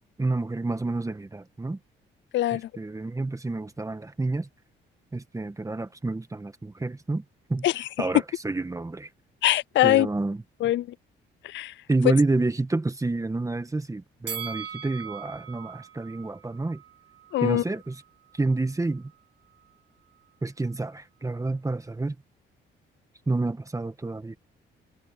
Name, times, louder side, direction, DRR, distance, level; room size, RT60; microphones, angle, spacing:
voice 1, 0.2-1.8 2.5-4.5 5.1-7.2 7.5-7.7 8.0-9.1 9.8-10.4 11.9-16.8 17.4-18.0 18.3-19.1 20.4-22.1 23.3-24.4, right 2 dB, 15° right, 1.6 m, -29 dB
voice 2, 9.4-10.1 10.6-10.9 11.4-11.7 17.3-17.6, left 15 dB, 70° left, 0.5 m, -22 dB
Bell, 14.3-17.5 17.8-17.9, right 8 dB, 60° right, 5.0 m, -40 dB
cardioid pair, 90°, 20 cm